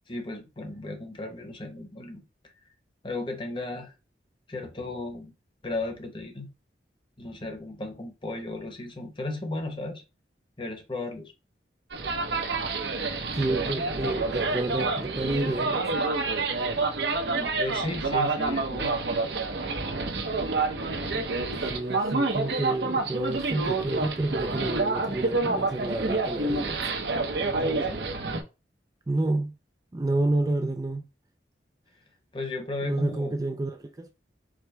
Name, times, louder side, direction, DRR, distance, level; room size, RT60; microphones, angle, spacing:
voice 1, 0.1-2.2 3.0-3.9 4.5-5.3 5.6-6.5 7.2-10.0 10.6-11.3 17.2-19.0 27.5-28.0 32.3-33.3, left 2 dB, 30° left, 0.9 m, -35 dB
sound 1, 11.9-28.4, right 3 dB, 80° right, 0.8 m, -28 dB
voice 2, 13.3-16.0 21.5-26.9 29.1-29.5 29.9-31.1 32.8-34.1, right 2 dB, 20° right, 0.3 m, -29 dB
4.9 x 2.1 x 4.5 m
head